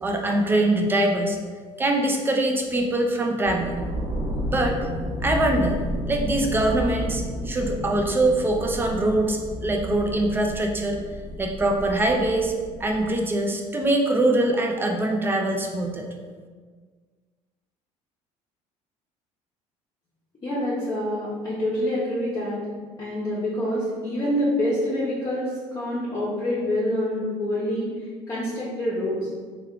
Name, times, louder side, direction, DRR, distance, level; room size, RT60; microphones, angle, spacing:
voice 1, 0.0-1.4 1.8-3.9 4.5-4.8 5.2-11.0 11.4-12.5 12.8-16.1, right 1 dB, 15° right, 2 dB, 0.4 m, -23 dB
sound 1, 3.4-13.2, equal, 40° right, 1.0 m, -32 dB
voice 2, 20.4-22.6 23.0-27.9 28.3-29.3, left 1 dB, 25° left, -7 dB, 0.7 m, -26 dB
3.3 x 2.3 x 3.6 m, 1.5 s
cardioid pair, 125°, 13 cm